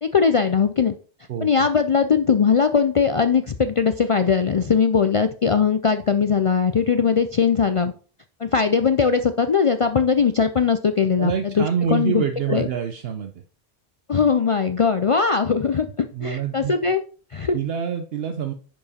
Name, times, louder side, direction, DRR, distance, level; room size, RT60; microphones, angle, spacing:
voice 1, 0.0-0.9 1.4-7.9 8.4-11.3 11.6-11.7 11.9-12.2 12.5-12.7 14.1-17.0 17.3-17.6, left 6 dB, 55° left, 9 dB, 0.3 m, -20 dB
voice 2, 1.3-1.7 11.2-13.4 16.1-16.7 17.5-18.5, right 8 dB, 70° right, 7 dB, 0.9 m, -26 dB
10.5 x 4.8 x 4.2 m, 0.41 s
omnidirectional pair, 1.1 m